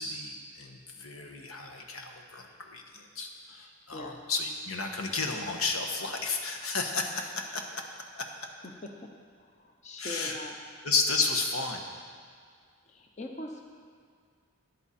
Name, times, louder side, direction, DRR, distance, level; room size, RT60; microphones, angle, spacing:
voice 1, 0.0-7.8 8.2-8.3 10.0-10.4 10.8-11.8, left 4 dB, 80° left, 3 dB, 1.2 m, -32 dB
voice 2, 9.5-10.5 12.9-13.6, left 2 dB, 35° left, 3 dB, 0.7 m, -42 dB
13.5 x 10.0 x 4.3 m, 2.1 s
head